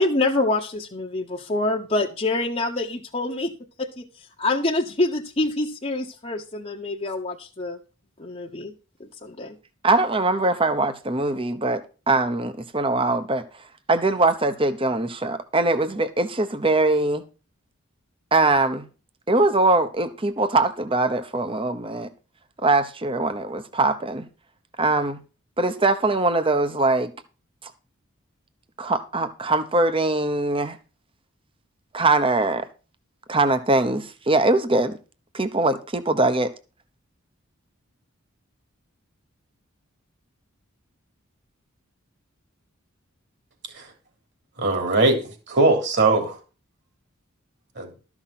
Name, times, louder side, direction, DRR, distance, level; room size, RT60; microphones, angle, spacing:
voice 1, 0.0-3.5 3.8-7.8 8.2-8.7 9.0-9.6, left 2 dB, 30° left, 1.1 m, -26 dB
voice 2, 9.8-11.8 12.1-13.4 13.9-17.2 18.3-18.9 19.3-22.1 22.6-24.3 24.8-25.2 25.6-27.1 28.8-30.8 31.9-32.7 33.3-34.9 35.3-36.5, right 2 dB, 25° right, 1.0 m, -22 dB
voice 3, 44.6-46.4 47.7-47.9, right 3 dB, 55° right, 3.4 m, -20 dB
13.0 x 6.1 x 5.9 m
head